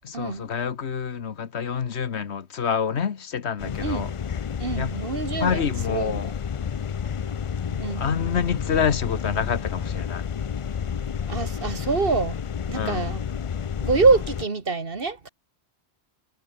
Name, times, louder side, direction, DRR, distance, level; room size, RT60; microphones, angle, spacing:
voice 1, 0.0-4.1 4.8-4.9 5.4-6.3 7.7-10.3 12.7-13.1, left 7 dB, 70° left, 1.4 m, -27 dB
sound 1, 3.6-14.5, left 7 dB, 50° left, 0.4 m, -30 dB
voice 2, 4.6-6.1 7.8-8.0 11.3-12.4 12.7-13.2 13.8-15.3, right 4 dB, 55° right, 2.0 m, -25 dB
omnidirectional pair, 1.2 m